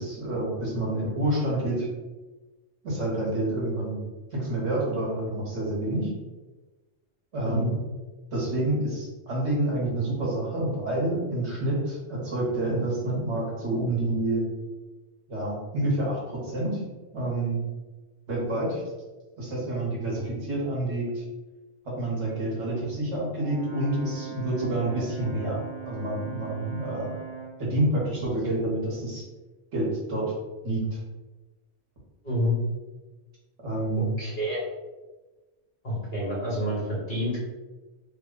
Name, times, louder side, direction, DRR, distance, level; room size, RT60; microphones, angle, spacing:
voice 1, 0.0-1.9 2.8-4.0 4.3-6.1 7.3-7.8 8.3-14.4 15.3-16.8 17.1-17.6 18.3-18.8 19.4-21.2 21.8-27.2 27.6-29.3 29.7-30.3 30.6-31.0 33.6-34.1, right 1 dB, 75° right, -5 dB, 1.4 m, -28 dB
voice 2, 7.4-7.8 32.2-32.5 34.0-34.6 35.8-37.5, equal, 45° left, -6 dB, 1.3 m, -28 dB
Brass instrument, 23.4-27.6, right 7 dB, 25° right, 0.9 m, -40 dB
3.1 x 2.2 x 3.6 m, 1.2 s
omnidirectional pair, 1.2 m